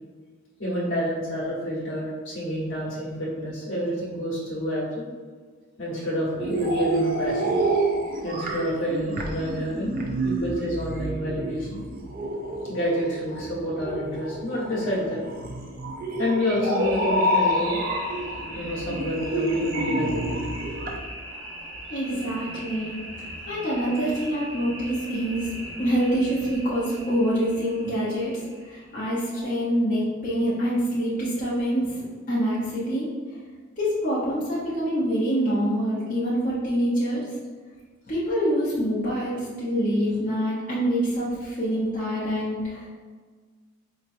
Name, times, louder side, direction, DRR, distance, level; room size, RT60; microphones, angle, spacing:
voice 1, 0.6-5.1 5.8-7.6 8.2-11.8 12.7-15.3 16.2-17.8 18.5-20.3, equal, 70° left, -6 dB, 1.2 m, -28 dB
sound 1, 6.4-21.0, right 1 dB, 45° right, 0.4 m, -28 dB
sound 2, 16.8-29.4, right 1 dB, 80° right, 1.0 m, -40 dB
voice 2, 21.9-25.5 25.8-33.1 33.8-37.3 38.1-42.9, equal, 40° left, -9 dB, 0.8 m, -26 dB
4.3 x 3.0 x 2.6 m, 1.5 s
head